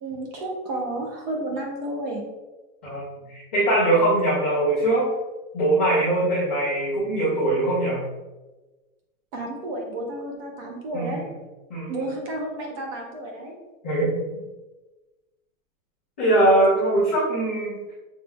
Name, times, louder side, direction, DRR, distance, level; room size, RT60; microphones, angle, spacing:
voice 1, 0.0-2.2 9.3-11.2 11.9-13.5, right 1 dB, 25° right, 0 dB, 0.7 m, -31 dB
voice 2, 3.3-5.1 5.5-8.0 10.9-11.1 11.7-12.0 13.8-14.1 16.2-17.8, right 1 dB, 10° left, -13 dB, 0.3 m, -21 dB
7.0 x 3.2 x 2.2 m, 1.2 s
supercardioid pair, 170°, 41 cm